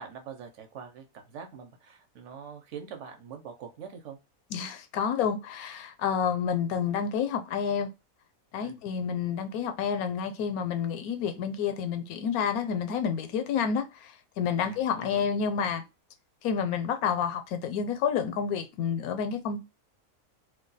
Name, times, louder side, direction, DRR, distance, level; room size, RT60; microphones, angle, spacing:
voice 1, 0.0-4.2 8.6-8.9 14.6-15.3, right 7 dB, 65° right, 0.9 m, -44 dB
voice 2, 4.5-7.9 8.5-15.8 16.4-19.6, left 7 dB, 85° left, 1.0 m, -29 dB
2.6 x 2.2 x 3.9 m
omnidirectional pair, 1.5 m